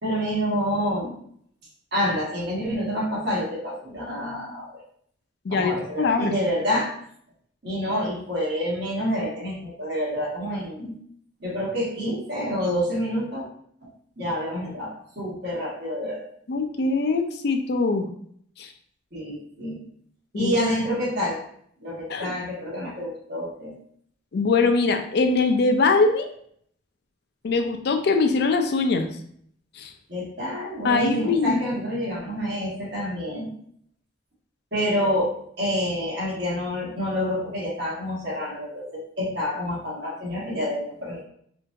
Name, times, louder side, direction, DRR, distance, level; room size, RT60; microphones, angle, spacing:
voice 1, 0.0-1.1 1.9-4.8 5.5-6.9 7.6-10.9 11.4-13.5 13.8-13.9 14.2-16.2 19.1-19.8 20.3-21.4 21.8-23.7 30.1-33.5 34.7-41.2, equal, 60° right, -7 dB, 1.5 m, -28 dB
voice 2, 6.0-6.3 16.5-18.1 18.6-18.7 20.3-20.5 22.1-22.3 24.3-26.3 27.4-29.1 29.8-29.9 30.8-31.6, left 3 dB, 60° left, 6 dB, 0.4 m, -22 dB
4.5 x 2.5 x 2.5 m, 0.65 s
head